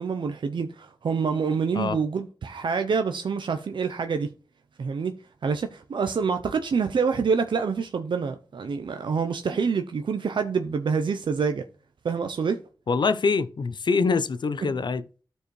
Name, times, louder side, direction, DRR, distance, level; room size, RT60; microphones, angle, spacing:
voice 1, 0.0-4.3 4.8-5.1 5.4-11.7 12.0-12.6 14.6-14.7, right 5 dB, 90° right, 0.6 m, -26 dB
voice 2, 12.9-15.0, left 4 dB, 70° left, 0.6 m, -24 dB
13.0 x 4.6 x 3.2 m
wide cardioid pair, 80°, 8 cm